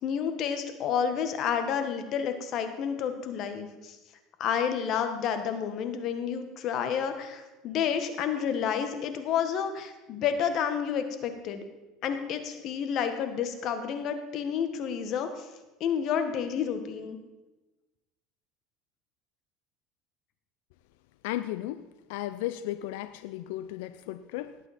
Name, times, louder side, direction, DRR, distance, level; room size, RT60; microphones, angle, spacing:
voice 1, 0.0-4.0 4.4-11.7 12.0-15.5 15.8-17.2, left 7 dB, 50° left, 8 dB, 1.4 m, -30 dB
voice 2, 21.2-24.6, left 14 dB, 80° left, 12 dB, 0.4 m, -35 dB
18.5 x 8.2 x 4.2 m, 1.1 s
supercardioid pair, 115°, 0 cm